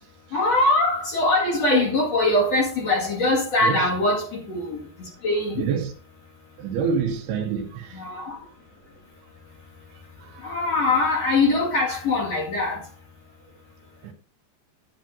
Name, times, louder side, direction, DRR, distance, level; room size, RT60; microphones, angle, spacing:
voice 1, 0.3-4.8 5.2-5.6 7.9-8.4 10.4-12.8, left 2 dB, 45° left, 2.7 m, -22 dB
voice 2, 5.6-5.9 6.6-8.0 10.2-10.6 14.0-14.1, right 6 dB, 75° right, 3.0 m, -27 dB
10.5 x 9.7 x 2.7 m
omnidirectional pair, 4.9 m